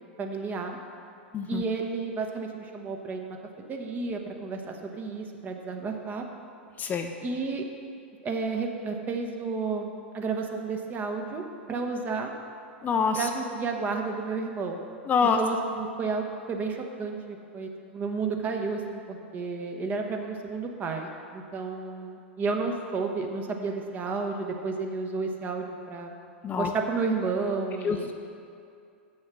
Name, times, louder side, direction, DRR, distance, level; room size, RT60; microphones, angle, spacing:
voice 1, 0.2-0.8 1.5-3.4 3.7-6.3 7.2-7.6 8.2-9.9 10.1-12.3 13.1-14.8 15.4-26.2 26.6-28.1, right 4 dB, 25° right, 3 dB, 0.9 m, -31 dB
voice 2, 6.8-7.1 12.8-13.3 15.1-15.4 26.4-26.7 27.8-28.1, left 6 dB, 25° left, 5 dB, 0.5 m, -26 dB
7.4 x 6.4 x 6.0 m, 2.4 s
hypercardioid pair, 100°, 6 cm